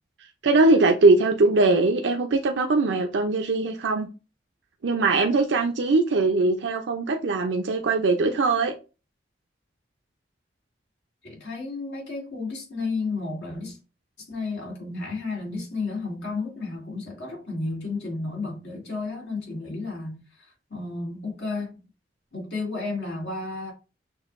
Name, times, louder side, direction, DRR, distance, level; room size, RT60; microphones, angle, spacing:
voice 1, 0.4-4.1 4.8-8.7, right 3 dB, 85° right, 0.5 m, -21 dB
voice 2, 11.2-13.8 14.3-20.2 20.7-21.7 22.3-23.7, left 3 dB, 80° left, 2.2 m, -32 dB
6.3 x 2.6 x 2.5 m
head